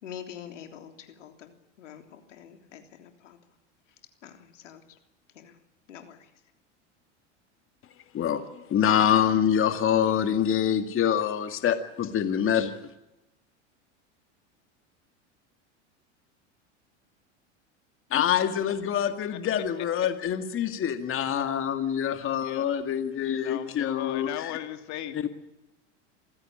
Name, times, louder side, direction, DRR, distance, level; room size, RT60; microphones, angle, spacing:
voice 1, 0.0-3.4 4.2-5.0 5.3-5.6 5.9-6.3, left 9 dB, 90° left, 3.4 m, -46 dB
voice 2, 8.1-12.7 18.1-24.5 25.2-25.3, left 9 dB, 35° left, 2.0 m, -25 dB
voice 3, 19.0-19.4 19.8-20.1 21.3-21.5 22.4-22.7 23.4-25.3, left 12 dB, 50° left, 2.6 m, -38 dB
27.0 x 16.0 x 8.8 m
hypercardioid pair, 100°, 35 cm